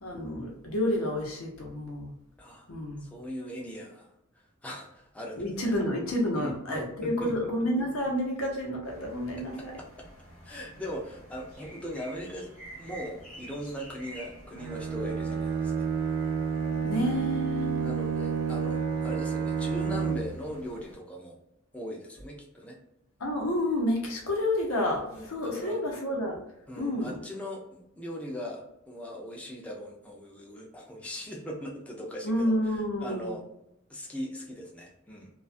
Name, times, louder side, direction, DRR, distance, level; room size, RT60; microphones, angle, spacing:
voice 1, 0.0-2.1 2.7-3.1 5.4-9.7 16.8-17.8 23.2-26.4 26.8-27.1 32.2-33.3, left 1 dB, 90° left, 0 dB, 0.8 m, -29 dB
voice 2, 2.4-2.7 3.0-5.7 6.3-7.5 10.0-10.1 10.4-15.9 17.8-21.4 21.7-22.7 25.0-25.8 26.7-33.4 33.9-35.3, equal, 5° left, -2 dB, 0.4 m, -40 dB
sound 1, 8.8-21.0, right 1 dB, 40° left, 1.0 m, -50 dB
Bowed string instrument, 14.6-20.5, right 6 dB, 75° right, 0.4 m, -30 dB
2.3 x 2.3 x 2.5 m, 0.79 s
head